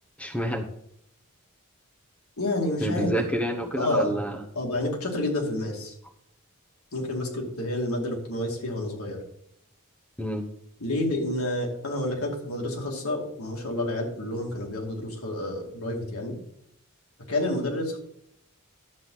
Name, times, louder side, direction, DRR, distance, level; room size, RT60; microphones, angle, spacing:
voice 1, 0.2-0.7 2.8-4.4 10.2-10.5, right 1 dB, 5° left, 3 dB, 0.9 m, -28 dB
voice 2, 2.4-3.1 3.8-4.2 4.5-5.9 6.9-9.2 10.8-16.3 17.3-18.0, left 1 dB, 80° left, 0 dB, 2.5 m, -29 dB
11.5 x 7.7 x 4.0 m, 0.75 s
head